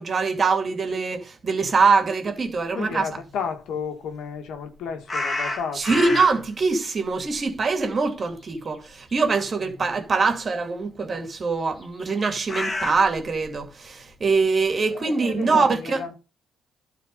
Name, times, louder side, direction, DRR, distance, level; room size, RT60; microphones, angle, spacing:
voice 1, 0.0-3.1 5.7-16.0, right 4 dB, 40° right, 2.4 m, -23 dB
voice 2, 2.7-6.1 14.9-16.1, left 6 dB, 80° left, 1.7 m, -32 dB
sound 1, 5.1-6.6 7.0-8.7 8.9-9.1 9.9-10.0 11.8-13.6, left 2 dB, 30° left, 2.4 m, -30 dB
12.0 x 4.3 x 5.4 m
cardioid pair, 90°, 0 cm